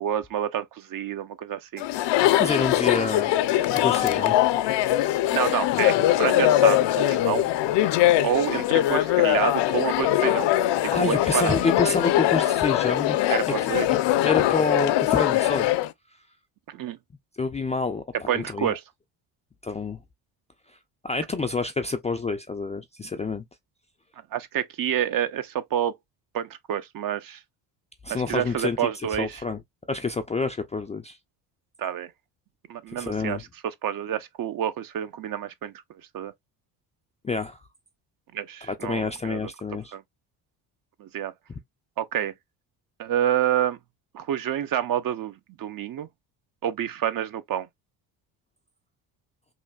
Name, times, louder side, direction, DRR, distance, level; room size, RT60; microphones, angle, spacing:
voice 1, 0.0-1.8 5.3-7.5 8.2-10.5 10.8-11.6 13.3-13.9 16.7-17.0 18.3-18.8 24.3-26.0 26.3-27.4 28.1-29.4 31.8-32.1 32.7-33.4 33.8-35.7 36.1-36.3 38.3-39.4 39.9-40.0 41.0-41.3 42.0-42.3 43.0-43.8 44.1-46.1 46.6-47.7, right 10 dB, 50° right, 0.6 m, -28 dB
Chatter, 1.8-15.9, left 14 dB, 65° left, 0.6 m, -22 dB
voice 2, 2.4-3.3 3.7-4.4 10.9-13.7 14.2-15.7 17.4-18.8 19.6-20.0 21.0-23.4 28.0-29.6 29.9-31.2 33.0-33.4 37.2-37.6 38.7-39.9, left 4 dB, 15° left, 0.3 m, -28 dB
3.2 x 2.6 x 2.2 m
supercardioid pair, 65°, 46 cm